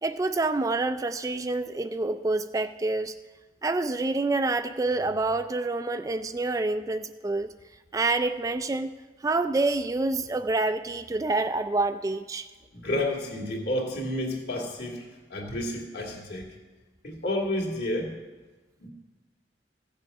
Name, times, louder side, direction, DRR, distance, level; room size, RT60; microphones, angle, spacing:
voice 1, 0.0-3.1 3.6-7.5 7.9-8.9 9.2-12.5, right 2 dB, 20° right, 9 dB, 0.3 m, -27 dB
voice 2, 12.7-16.5 17.0-18.1 18.8-18.9, left 1 dB, 65° left, 1 dB, 2.3 m, -30 dB
15.5 x 7.4 x 5.4 m, 1.3 s
head